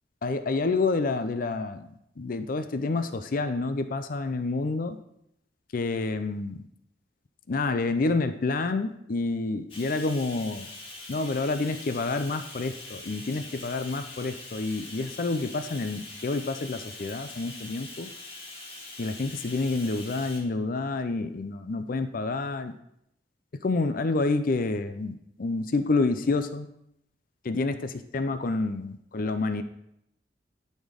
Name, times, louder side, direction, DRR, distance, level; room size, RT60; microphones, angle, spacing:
voice 1, 0.2-1.9 2.2-5.0 5.7-6.6 7.5-10.7 11.1-18.1 19.0-22.7 23.6-26.7 27.4-29.6, left 3 dB, 50° left, 10 dB, 0.5 m, -28 dB
Bathtub (filling or washing), 9.7-20.4, left 2 dB, 30° left, 1.9 m, -43 dB
11.0 x 4.4 x 5.1 m, 0.77 s
head